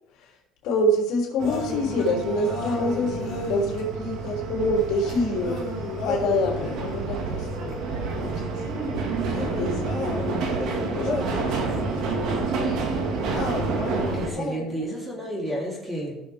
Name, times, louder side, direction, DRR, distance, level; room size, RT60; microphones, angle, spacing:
voice 1, 0.6-5.6 6.0-8.6 9.6-12.8, left 1 dB, 65° left, -1 dB, 3.1 m, -27 dB
sound 1, 1.4-3.8 5.4-7.0 9.2-11.5 13.3-14.8, left 3 dB, 45° left, 4.5 m, -33 dB
sound 2, 1.4-14.3, right 3 dB, 65° right, 1.9 m, -29 dB
voice 2, 14.1-16.2, right 1 dB, 15° right, -2 dB, 3.2 m, -31 dB
17.0 x 6.4 x 3.5 m, 0.85 s
cardioid pair, 135°, 0 cm